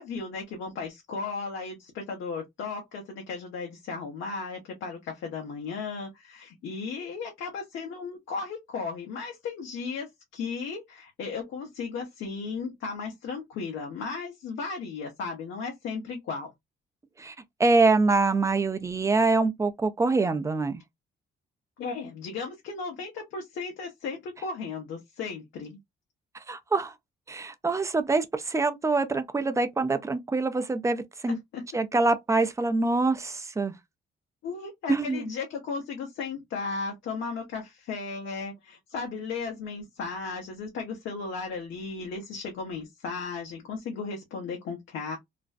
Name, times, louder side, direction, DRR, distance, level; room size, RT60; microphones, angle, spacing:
voice 1, 0.0-16.5 21.8-25.8 31.3-31.6 34.4-45.2, left 4 dB, 80° left, 0.8 m, -35 dB
voice 2, 17.6-20.8 26.5-26.9 27.3-31.4 31.7-33.7 34.9-35.3, right 3 dB, 15° right, 0.4 m, -25 dB
2.5 x 2.1 x 2.4 m
cardioid pair, 90°, 20 cm